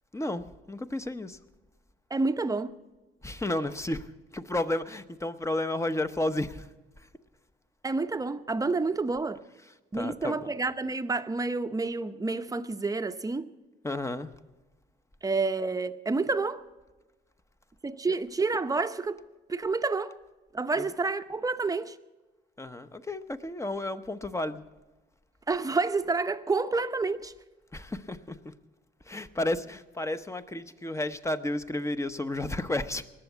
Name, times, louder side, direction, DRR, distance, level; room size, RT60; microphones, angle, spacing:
voice 1, 0.1-1.4 3.2-6.7 7.0-7.1 9.7-10.5 13.8-14.3 18.1-18.2 20.8-20.9 22.6-24.6 27.7-28.5 29.0-33.0, left 1 dB, 15° left, 0.8 m, -32 dB
voice 2, 2.1-2.7 7.8-9.4 9.9-13.5 15.2-16.6 17.8-19.2 19.5-20.1 20.5-22.0 25.5-27.3, right 3 dB, 15° right, 0.8 m, -29 dB
20.0 x 7.1 x 8.4 m
cardioid pair, 90°, 20 cm